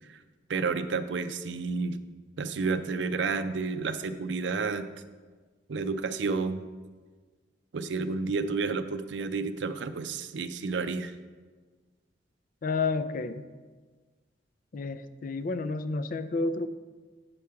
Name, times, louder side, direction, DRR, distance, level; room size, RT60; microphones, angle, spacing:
voice 1, 0.5-2.0 2.4-4.9 5.7-6.7 7.7-11.1, right 4 dB, 85° right, 10 dB, 0.5 m, -30 dB
voice 2, 12.6-13.4 14.7-16.7, left 3 dB, 50° left, 12 dB, 0.4 m, -30 dB
8.3 x 4.9 x 5.7 m, 1.4 s
head